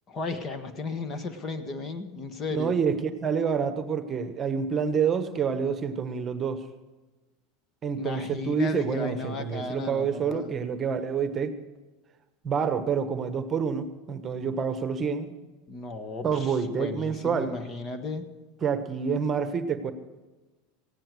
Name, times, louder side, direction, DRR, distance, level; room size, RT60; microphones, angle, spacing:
voice 1, 0.1-2.8 7.9-10.6 15.7-18.2, left 3 dB, 30° left, 8 dB, 1.5 m, -35 dB
voice 2, 2.5-6.6 7.8-11.6 12.4-15.3 16.2-17.6 18.6-19.9, right 6 dB, 30° right, 10 dB, 1.2 m, -28 dB
16.5 x 10.0 x 6.2 m, 1.2 s
supercardioid pair, 120°, 0 cm